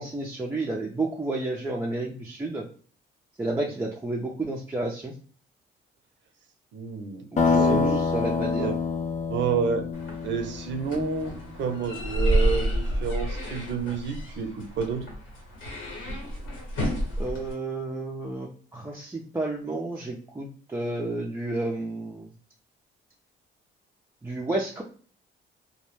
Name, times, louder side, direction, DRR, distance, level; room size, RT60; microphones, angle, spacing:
voice 1, 0.0-2.6 3.4-5.1 7.3-8.7 17.2-22.3 24.2-24.8, right 2 dB, 15° right, -2 dB, 0.4 m, -31 dB
voice 2, 6.7-8.0 8.5-8.8 9.3-9.9 10.2-15.1, right 5 dB, 65° right, 6 dB, 0.6 m, -29 dB
sound 1, 7.4-11.2, left 5 dB, 35° left, 0.5 m, -26 dB
sound 2, 9.9-17.5, equal, 80° left, 1.1 m, -30 dB
2.1 x 2.1 x 3.0 m, 0.43 s
cardioid pair, 90°, 20 cm